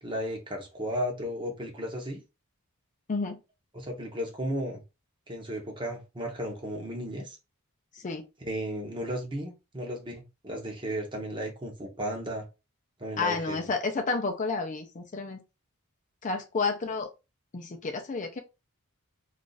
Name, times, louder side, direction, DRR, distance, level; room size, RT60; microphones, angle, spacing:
voice 1, 0.0-2.2 3.7-4.8 5.3-7.4 8.4-12.5 13.0-13.6, equal, 20° right, 0.8 m, -34 dB
voice 2, 3.1-3.4 7.9-8.2 13.2-15.4 16.2-17.1 17.5-18.4, left 4 dB, 35° left, 0.5 m, -30 dB
2.5 x 2.4 x 3.8 m
head